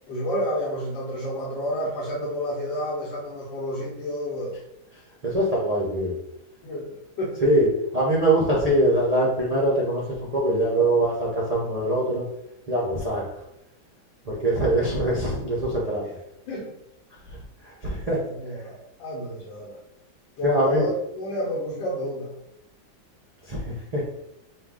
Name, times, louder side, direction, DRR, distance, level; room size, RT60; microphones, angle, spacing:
voice 1, 0.1-4.6 6.6-7.4 11.6-11.8 16.5-16.7 18.1-19.8 20.4-22.3, equal, 70° left, -4 dB, 1.7 m, -30 dB
voice 2, 5.2-6.1 7.4-10.0 10.3-12.2 12.7-13.3 14.3-16.0 17.7-18.2 20.4-20.8 23.5-23.6 23.9-24.0, right 1 dB, 90° right, -5 dB, 0.3 m, -22 dB
5.5 x 2.4 x 3.7 m, 0.86 s
omnidirectional pair, 2.1 m